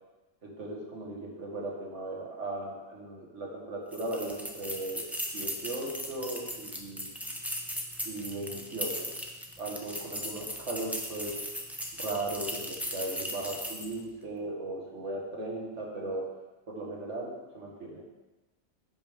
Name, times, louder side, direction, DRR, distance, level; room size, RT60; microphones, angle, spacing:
voice 1, 0.4-5.0 5.3-7.1 8.0-9.2 9.6-11.4 12.0-16.2 16.7-18.0, right 2 dB, 75° right, -2 dB, 1.9 m, -37 dB
sound 1, 3.9-14.0, equal, ahead, 0.6 m, -38 dB
10.0 x 5.5 x 3.6 m, 1.1 s
omnidirectional pair, 1.2 m